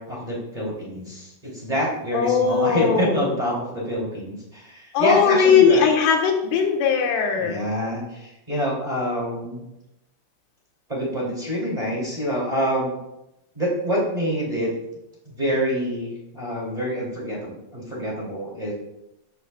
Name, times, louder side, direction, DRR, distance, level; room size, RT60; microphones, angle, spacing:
voice 1, 0.0-5.9 7.3-9.7 10.9-12.9 13.5-14.7 15.2-18.7, equal, 15° right, -6 dB, 1.2 m, -26 dB
voice 2, 2.1-3.4 4.9-7.6, left 6 dB, 75° left, 2 dB, 3.7 m, -19 dB
15.5 x 8.0 x 2.3 m, 0.89 s
omnidirectional pair, 5.7 m